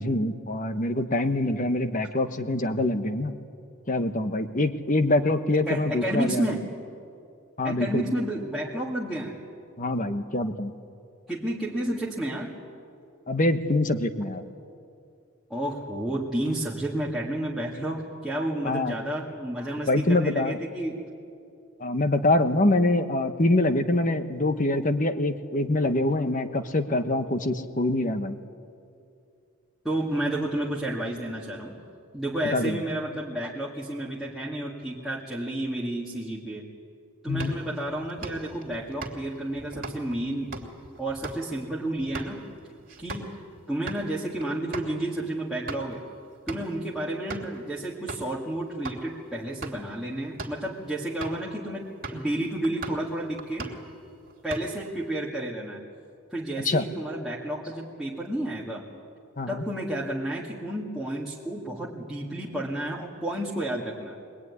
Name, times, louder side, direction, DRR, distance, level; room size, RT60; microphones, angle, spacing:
voice 1, 0.0-3.4 3.9-6.4 7.6-8.0 9.8-10.7 13.3-14.4 18.6-18.9 19.9-20.6 21.8-28.4 32.5-32.8 37.3-37.5 56.6-56.8 59.4-59.7, left 2 dB, 35° left, 8 dB, 1.3 m, -25 dB
voice 2, 5.7-6.6 7.6-9.4 11.3-12.5 15.5-21.0 29.8-31.8 32.1-36.7 37.2-40.5 41.0-42.4 43.0-43.3 43.7-46.0 46.5-53.7 54.4-55.8 56.3-58.9 59.5-64.2, right 1 dB, ahead, -7 dB, 2.2 m, -31 dB
sound 1, 37.3-43.4 43.7-44.0 44.4-44.5 44.7-44.9 45.4-46.0 46.5-46.8 47.3-47.6 48.1-48.3 48.8-49.0 49.5-49.9 50.3-50.6 51.2-51.5 52.0-52.3 52.6-53.1 53.4-53.9 54.3-54.9, right 2 dB, 40° right, 3.0 m, -39 dB
24.0 x 21.5 x 9.7 m, 2.5 s
head